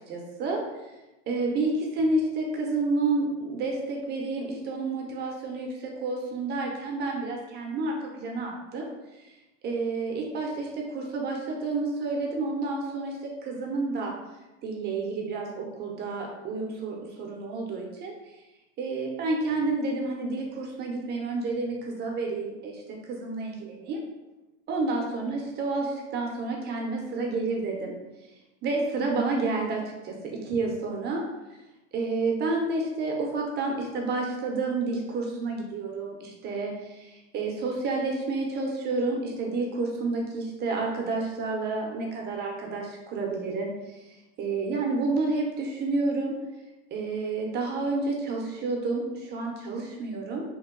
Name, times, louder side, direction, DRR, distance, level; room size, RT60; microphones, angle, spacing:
voice 1, 0.1-0.9 1.3-8.9 9.6-13.2 13.4-14.1 14.6-18.1 18.8-24.0 24.7-27.9 28.6-30.2 30.4-31.2 31.9-44.0 44.4-46.4 46.9-50.4, right 3 dB, 30° right, 0 dB, 0.6 m, -30 dB
2.9 x 2.2 x 3.6 m, 1.0 s
supercardioid pair, 135°, 35 cm